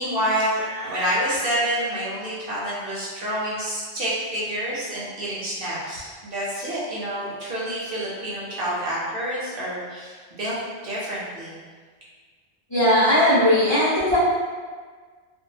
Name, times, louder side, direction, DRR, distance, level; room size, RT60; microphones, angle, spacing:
voice 1, 0.0-11.6, equal, 60° right, -7 dB, 0.7 m, -28 dB
voice 2, 12.7-14.2, left 1 dB, 30° left, -11 dB, 0.5 m, -18 dB
2.4 x 2.2 x 2.7 m, 1.5 s
omnidirectional pair, 1.2 m